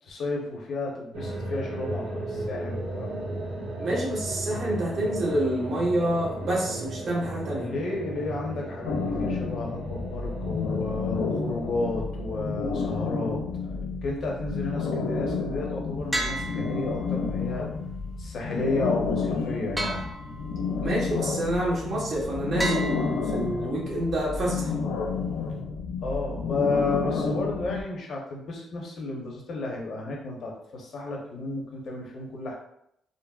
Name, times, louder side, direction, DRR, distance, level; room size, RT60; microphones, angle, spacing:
voice 1, 0.0-3.3 7.6-13.4 14.0-17.7 18.2-20.1 26.0-32.5, left 2 dB, 60° left, -1 dB, 0.9 m, -32 dB
sound 1, 1.1-13.2, right 1 dB, 75° right, 1.1 m, -36 dB
voice 2, 3.8-7.7 20.8-24.7, right 1 dB, 55° right, -4 dB, 1.1 m, -28 dB
sound 2, 8.9-27.8, left 4 dB, 85° left, 0.4 m, -30 dB
sound 3, 16.1-17.4 19.8-20.8 22.6-23.8, right 1 dB, 10° right, 0.4 m, -33 dB
3.9 x 2.1 x 2.3 m, 0.75 s
cardioid pair, 90°, 0 cm